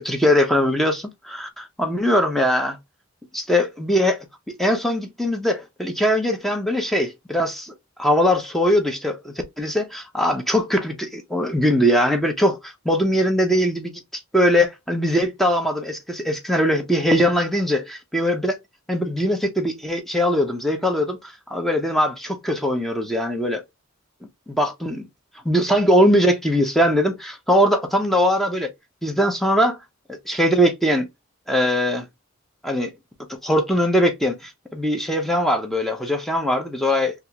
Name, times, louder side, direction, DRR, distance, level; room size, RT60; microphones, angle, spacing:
voice 1, 0.0-2.8 3.3-4.3 4.6-7.7 8.0-18.6 18.9-23.6 24.5-25.1 25.4-28.7 29.0-29.8 30.1-31.1 31.5-32.0 32.6-32.9 33.4-37.1, equal, ahead, 0.7 m, -21 dB
3.4 x 2.5 x 2.9 m
head